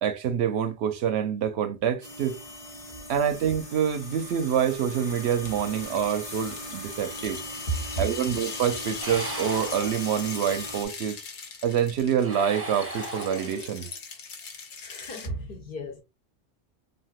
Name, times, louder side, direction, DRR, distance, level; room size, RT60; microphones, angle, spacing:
voice 1, 0.0-2.4 3.1-7.4 8.0-11.2 11.6-13.9, right 8 dB, 75° right, 0.8 m, -26 dB
sound 1, 2.0-10.8, left 1 dB, 35° left, 0.7 m, -39 dB
sound 2, 5.2-15.3, left 5 dB, 85° left, 1.0 m, -41 dB
sound 3, 9.0-10.5 12.1-13.9, right 1 dB, 15° right, 0.5 m, -37 dB
voice 2, 14.8-16.0, right 2 dB, 55° left, 1.0 m, -33 dB
3.4 x 2.5 x 2.3 m
omnidirectional pair, 1.1 m